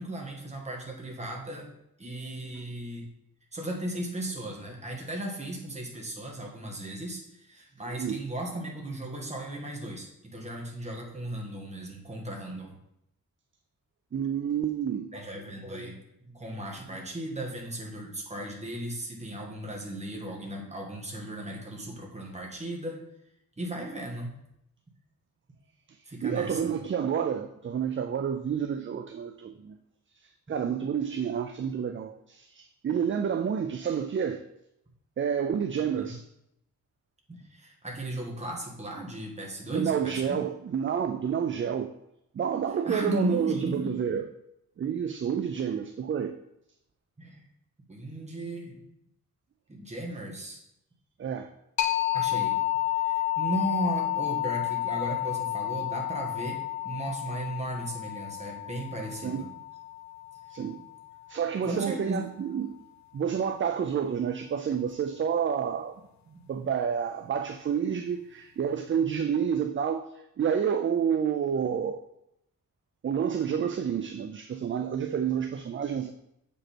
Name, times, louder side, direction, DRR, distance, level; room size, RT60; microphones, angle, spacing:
voice 1, 0.0-1.7 2.0-3.1 3.5-12.7 15.1-16.0 16.3-23.1 23.6-24.4 26.0-26.7 36.0-36.1 37.3-40.4 42.8-44.0 47.2-47.4 47.9-48.8 49.7-50.6 52.1-52.6 52.9-59.5 61.6-62.4 66.3-66.4, right 1 dB, 20° right, -1 dB, 1.5 m, -36 dB
voice 2, 14.1-15.1 25.9-29.8 30.2-34.4 35.2-36.2 39.7-41.9 42.3-44.3 44.8-46.3 51.2-51.5 59.2-59.5 60.5-60.8 61.3-62.8 63.1-66.0 66.5-72.0 73.0-76.1, right 7 dB, 35° right, 7 dB, 0.4 m, -29 dB
sound 1, 51.8-61.2, left 15 dB, 55° left, 0.5 m, -31 dB
7.4 x 5.3 x 4.3 m, 0.80 s
wide cardioid pair, 140°, 34 cm